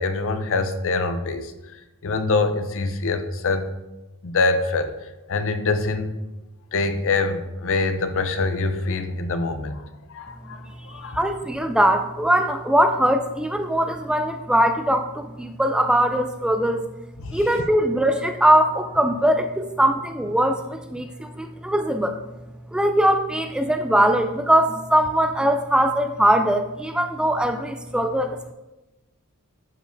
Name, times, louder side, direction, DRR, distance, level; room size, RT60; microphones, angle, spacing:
voice 1, 0.0-3.6 4.2-6.2 6.7-9.8 10.1-11.2 17.2-17.5, left 3 dB, 60° left, 8 dB, 0.6 m, -25 dB
voice 2, 11.2-16.9 17.3-22.1 22.7-28.5, right 1 dB, 5° right, 6 dB, 0.3 m, -21 dB
11.0 x 5.2 x 2.6 m, 1.0 s
head